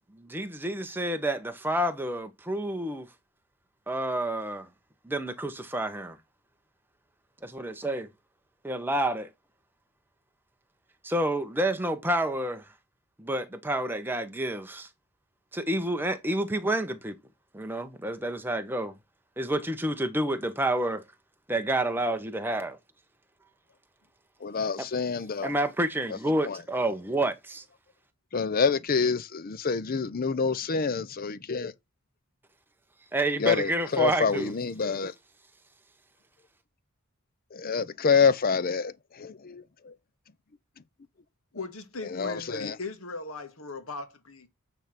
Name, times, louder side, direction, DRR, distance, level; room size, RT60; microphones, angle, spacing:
voice 1, 0.1-3.1 3.9-4.7 5.0-6.2 7.4-8.1 8.6-9.3 11.0-12.7 13.2-14.9 15.5-17.2 17.5-19.0 19.4-21.0 21.5-22.8 25.4-27.6 33.1-34.5, right 1 dB, 10° right, 0.9 m, -29 dB
voice 2, 24.4-25.5 26.4-26.6 28.3-31.7 33.4-35.1 37.5-38.9 39.2-39.9 42.1-42.8, left 5 dB, 40° left, 0.6 m, -27 dB
voice 3, 41.5-44.5, left 3 dB, 70° left, 1.6 m, -38 dB
9.0 x 3.5 x 5.9 m
head